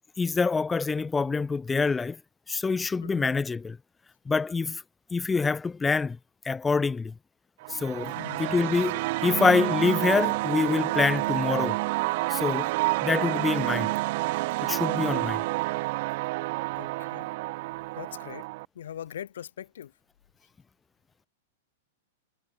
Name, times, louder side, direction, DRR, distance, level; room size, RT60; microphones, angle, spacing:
voice 1, 0.2-2.2 2.5-3.8 4.3-4.8 5.1-6.2 6.4-7.1 7.7-11.8 12.3-12.7 13.0-13.9 14.6-15.5, left 4 dB, 15° left, 0.5 m, -26 dB
sound 1, 7.6-18.7, right 22 dB, 55° right, 0.3 m, -29 dB
voice 2, 16.8-17.3 17.9-18.5 18.7-19.9, left 10 dB, 75° left, 1.5 m, -41 dB
hypercardioid pair, 110°, 0 cm